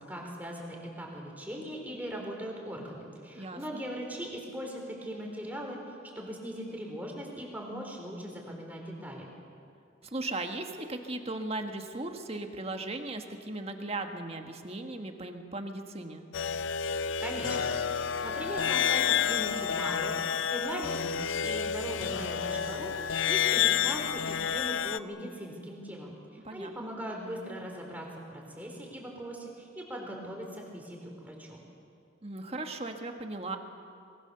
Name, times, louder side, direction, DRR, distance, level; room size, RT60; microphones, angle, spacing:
voice 1, 0.0-9.3 17.2-31.6, equal, 10° right, 0 dB, 4.0 m, -40 dB
voice 2, 3.3-3.8 10.0-16.2 26.4-26.7 32.2-33.6, right 2 dB, 30° right, 5 dB, 1.6 m, -37 dB
sound 1, 16.3-25.0, left 8 dB, 75° left, 0.6 m, -29 dB
25.0 x 22.5 x 6.9 m, 2.4 s
head